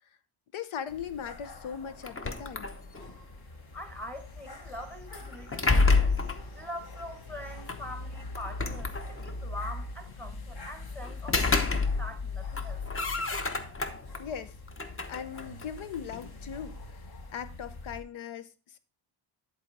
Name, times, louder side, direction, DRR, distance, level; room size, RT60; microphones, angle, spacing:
voice 1, 0.5-2.7 14.2-14.5 15.1-17.0 17.3-18.8, left 8 dB, 75° left, 0.9 m, -39 dB
sound 1, 0.9-18.0, left 3 dB, 50° left, 1.4 m, -42 dB
sound 2, 2.0-3.2 5.1-6.5 7.7-7.8 8.4-9.4 11.0-12.3 12.5-14.2 14.7-16.3, left 3 dB, 25° left, 0.9 m, -29 dB
voice 2, 3.7-6.1 6.5-13.1, left 1 dB, 5° left, 1.1 m, -43 dB
10.5 x 4.2 x 4.7 m
cardioid pair, 105°, 49 cm